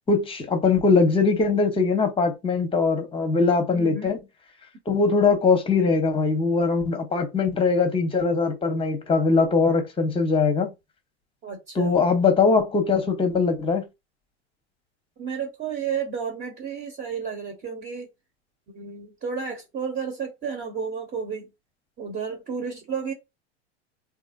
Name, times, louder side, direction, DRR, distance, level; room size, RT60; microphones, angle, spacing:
voice 1, 0.1-4.2 4.9-10.7 11.7-13.8, left 4 dB, 15° left, 1.0 m, -21 dB
voice 2, 3.7-4.2 11.4-12.0 15.2-18.1 18.7-21.5 22.0-23.1, right 6 dB, 25° right, 1.2 m, -32 dB
3.5 x 2.7 x 2.6 m
hypercardioid pair, 105°, 36 cm